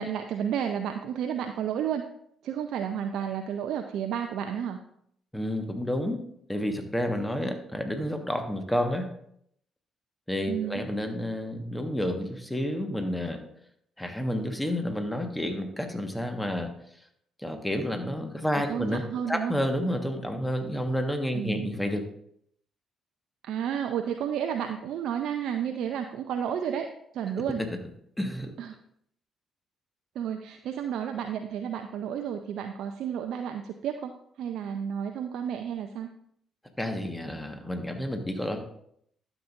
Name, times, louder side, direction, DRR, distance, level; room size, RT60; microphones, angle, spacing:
voice 1, 0.0-2.0 2.4-4.8 10.5-10.8 18.7-19.5 21.3-21.7 23.4-26.9 27.1-27.6 28.6-28.8 30.2-36.1, right 8 dB, 65° right, 6 dB, 0.5 m, -31 dB
voice 2, 5.3-6.2 6.5-9.1 10.3-13.4 14.0-16.7 17.4-22.0 27.6-27.7 28.2-28.5 36.8-38.6, equal, 10° left, 5 dB, 1.4 m, -30 dB
12.0 x 7.2 x 2.6 m, 0.69 s
hypercardioid pair, 45°, 0 cm